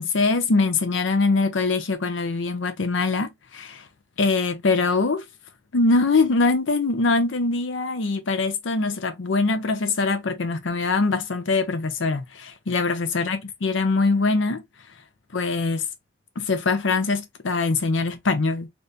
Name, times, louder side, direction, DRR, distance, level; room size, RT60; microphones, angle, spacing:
voice 1, 0.0-3.9 4.2-5.3 5.7-14.6 15.3-15.9 16.4-18.7, left 3 dB, 80° left, 0.6 m, -23 dB
2.7 x 2.6 x 3.4 m
head